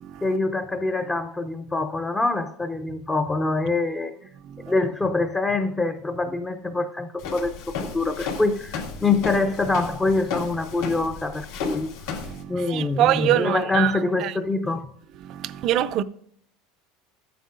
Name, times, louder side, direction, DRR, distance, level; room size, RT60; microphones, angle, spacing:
voice 1, 0.2-4.3 4.7-12.2 12.5-14.9, left 3 dB, 10° left, 0.5 m, -25 dB
Walk footsteps, 7.2-12.4, left 5 dB, 80° left, 2.2 m, -34 dB
voice 2, 12.2-13.9 14.2-14.3 15.2-16.0, right 12 dB, 45° right, 0.4 m, -24 dB
14.5 x 9.1 x 2.5 m
supercardioid pair, 150°, 0 cm